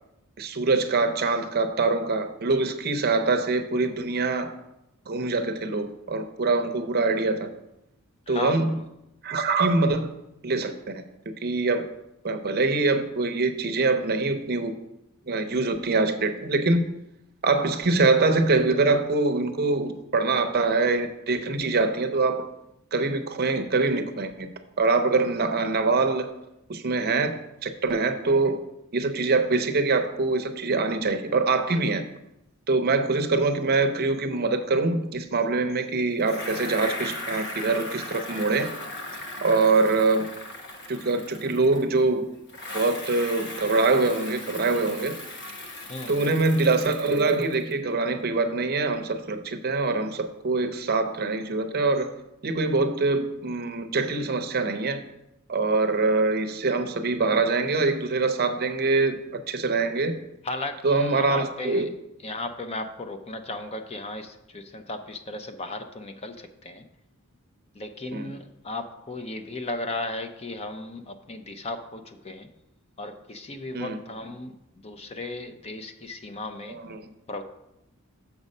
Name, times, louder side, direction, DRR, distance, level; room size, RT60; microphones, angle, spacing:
voice 1, 0.4-4.5 5.1-7.5 8.3-8.8 9.2-10.1 10.4-11.0 11.4-11.9 12.2-14.8 15.3-16.8 17.4-22.5 22.9-24.5 24.8-26.3 26.7-27.4 27.6-28.6 28.9-32.0 32.7-38.7 39.4-40.3 40.9-42.3 42.7-45.2 46.1-52.1 52.4-55.0 55.5-60.2 60.8-61.9 68.1-68.3 73.7-74.0 76.7-77.1, right 3 dB, 45° right, 8 dB, 0.6 m, -24 dB
voice 2, 8.3-8.9 45.9-46.4 60.4-61.9 62.2-66.9 67.8-72.5 73.0-74.5 74.8-76.8 77.3-77.4, left 2 dB, 30° left, 8 dB, 0.5 m, -35 dB
Bicycle, 36.2-42.1 42.5-47.7, left 2 dB, 50° left, 1.0 m, -38 dB
7.1 x 5.2 x 5.3 m, 0.88 s
head